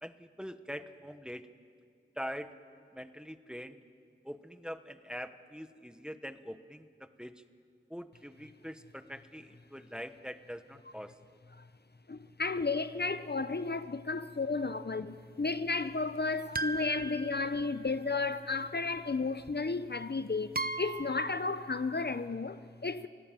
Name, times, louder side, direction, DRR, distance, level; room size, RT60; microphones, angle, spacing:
voice 1, 0.0-1.5 2.2-2.6 2.9-3.8 4.2-7.4 7.9-11.2, equal, 5° right, 1.1 m, -43 dB
voice 2, 12.1-23.1, left 3 dB, 55° left, 0.6 m, -33 dB
sound 1, 16.5-18.1 19.5-19.6 20.5-21.4, right 3 dB, 45° right, 0.7 m, -38 dB
28.0 x 16.5 x 7.5 m
wide cardioid pair, 40°, 21 cm